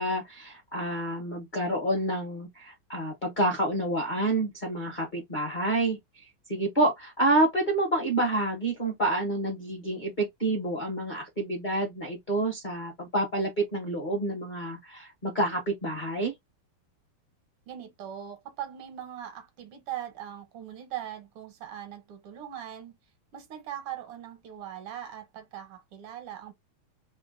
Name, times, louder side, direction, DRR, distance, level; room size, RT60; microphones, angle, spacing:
voice 1, 0.0-6.0 6.5-16.3, right 1 dB, 45° left, 0.6 m, -28 dB
voice 2, 17.7-23.0 23.3-26.5, right 10 dB, 80° right, 1.8 m, -40 dB
3.7 x 2.1 x 2.4 m
omnidirectional pair, 2.4 m